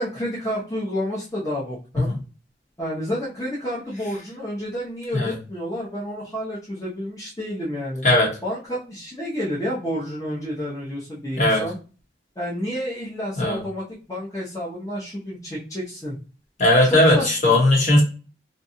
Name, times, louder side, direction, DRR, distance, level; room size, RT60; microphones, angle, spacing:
voice 1, 0.0-2.1 2.8-8.0 8.4-11.8 12.4-16.2 16.8-17.6, equal, 20° left, -6 dB, 0.6 m, -30 dB
voice 2, 16.6-18.0, left 1 dB, 45° left, -2 dB, 0.9 m, -17 dB
2.7 x 2.2 x 2.6 m, 0.35 s
head